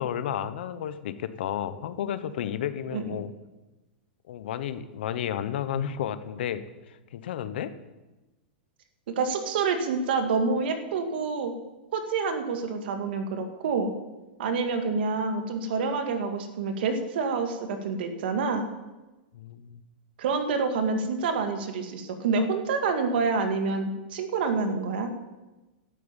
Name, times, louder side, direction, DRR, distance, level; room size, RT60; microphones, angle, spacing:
voice 1, 0.0-3.3 4.3-7.7 19.3-19.8, left 9 dB, 70° left, 12 dB, 1.1 m, -32 dB
voice 2, 9.1-11.5 11.9-13.9 14.4-18.7 20.2-25.1, right 4 dB, 65° right, 6 dB, 2.3 m, -27 dB
12.5 x 8.9 x 9.0 m, 1.1 s
supercardioid pair, 155°, 6 cm